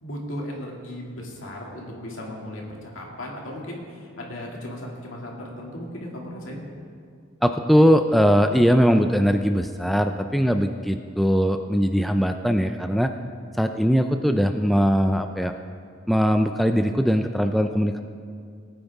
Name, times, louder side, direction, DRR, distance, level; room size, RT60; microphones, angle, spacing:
voice 1, 0.0-6.6, left 1 dB, 70° left, -2 dB, 2.3 m, -36 dB
voice 2, 7.4-13.1 13.6-15.5 16.1-18.0, equal, ahead, 6 dB, 0.3 m, -20 dB
19.0 x 9.2 x 3.5 m, 2.2 s
head